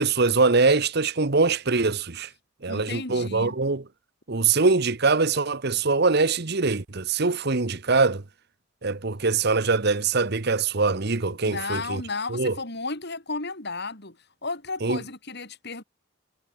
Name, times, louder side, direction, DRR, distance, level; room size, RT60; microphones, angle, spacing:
voice 1, 0.0-2.3 2.6-3.8 4.3-8.2 8.8-12.0 12.3-12.5 14.8-15.0, right 4 dB, 50° right, 1.1 m, -23 dB
voice 2, 2.7-3.6 11.4-14.2 14.4-15.8, left 3 dB, 50° left, 4.2 m, -33 dB
head